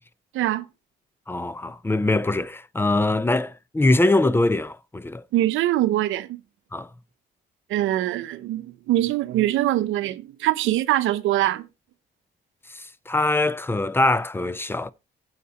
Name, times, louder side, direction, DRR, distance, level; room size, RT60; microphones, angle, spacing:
voice 1, 0.3-0.7 5.3-6.4 7.7-11.7, right 14 dB, 85° right, 0.8 m, -23 dB
voice 2, 1.3-5.2 6.7-6.9 12.7-14.9, left 2 dB, 10° left, 0.6 m, -23 dB
9.4 x 7.2 x 4.1 m
cardioid pair, 90°, 20 cm